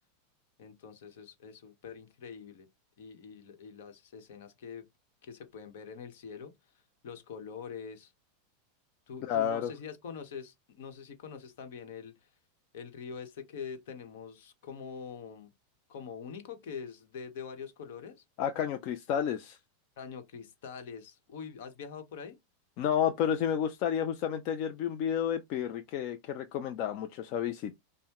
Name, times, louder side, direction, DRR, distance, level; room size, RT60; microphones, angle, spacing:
voice 1, 0.6-2.7 3.0-4.8 5.2-8.1 9.1-12.3 12.7-15.5 15.9-18.2 20.0-22.4, left 6 dB, 70° left, 1.1 m, -44 dB
voice 2, 9.2-9.7 18.4-19.6 22.8-27.7, left 9 dB, 50° left, 0.5 m, -31 dB
5.4 x 2.2 x 3.0 m
supercardioid pair, 130°, 0 cm